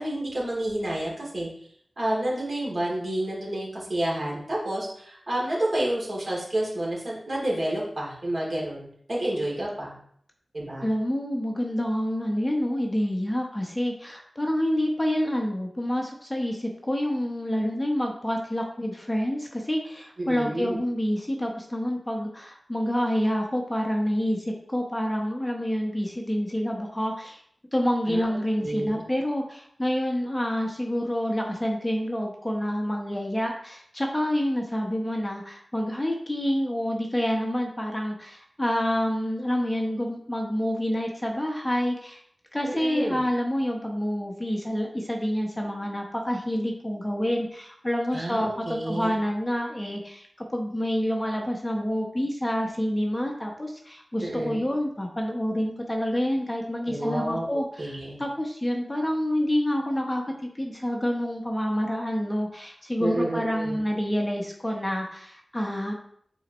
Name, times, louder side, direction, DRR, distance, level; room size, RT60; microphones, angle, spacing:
voice 1, 0.0-1.5 2.0-9.9 10.5-10.9 20.2-20.8 28.1-28.2 28.6-29.0 42.6-43.2 48.1-49.2 54.2-54.6 56.9-58.2 63.0-63.8, right 1 dB, 55° right, -5 dB, 2.8 m, -29 dB
voice 2, 10.8-27.4 27.7-42.2 42.5-50.3 50.5-60.2 60.5-65.9, equal, 15° left, 0 dB, 1.0 m, -28 dB
8.9 x 4.3 x 3.1 m, 0.65 s
wide cardioid pair, 90°, 0 cm